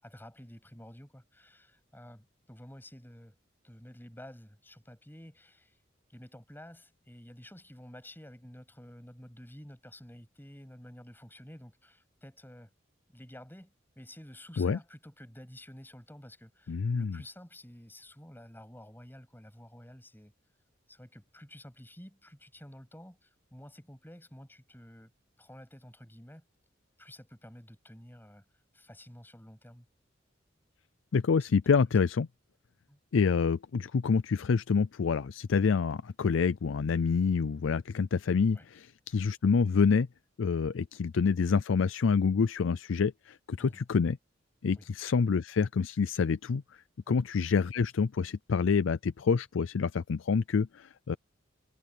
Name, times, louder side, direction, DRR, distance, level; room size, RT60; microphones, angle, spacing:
voice 1, 0.0-3.4 3.6-5.7 6.1-12.7 13.1-20.3 20.9-25.1 25.4-26.4 27.0-28.4 28.7-29.9 31.6-31.7 32.9-33.0 38.5-38.7 43.6-43.8 44.8-44.9 47.1-47.2, equal, 10° left, 7.6 m, -51 dB
voice 2, 16.7-17.2 31.1-32.3 33.1-40.1 40.4-44.2 44.6-46.6 47.1-51.2, left 5 dB, 80° left, 0.5 m, -27 dB
head